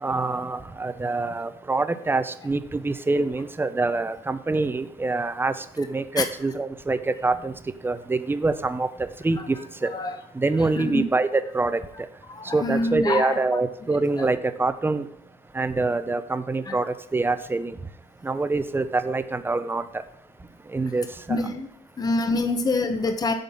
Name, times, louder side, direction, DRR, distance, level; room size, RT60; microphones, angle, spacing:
voice 1, 0.0-7.5 7.8-9.6 9.8-9.9 10.3-11.8 12.5-15.1 15.5-17.8 18.2-19.9 20.7-21.4, right 3 dB, 15° right, 12 dB, 0.6 m, -25 dB
voice 2, 9.8-10.2 10.6-11.0 12.3-13.6 14.2-14.3 16.7-16.8 21.3-21.7 22.0-23.3, left 3 dB, 20° left, 7 dB, 0.9 m, -26 dB
8.9 x 4.0 x 7.0 m, 0.68 s
cardioid pair, 110°, 17 cm